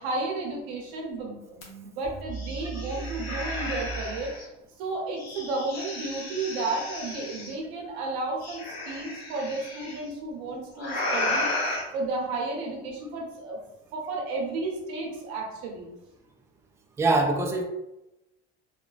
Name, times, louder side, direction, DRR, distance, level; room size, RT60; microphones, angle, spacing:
voice 1, 0.0-4.3 4.8-13.6 13.9-15.9, right 3 dB, 80° right, -1 dB, 0.9 m, -33 dB
sound 1, 1.6-1.7 2.0-4.4 5.2-7.5 8.4-9.9 10.8-11.8, left 1 dB, 55° left, 1.1 m, -33 dB
voice 2, 3.3-3.7 17.0-17.6, right 2 dB, 10° right, 2 dB, 0.3 m, -25 dB
3.1 x 2.2 x 2.3 m, 0.93 s
supercardioid pair, 80°, 31 cm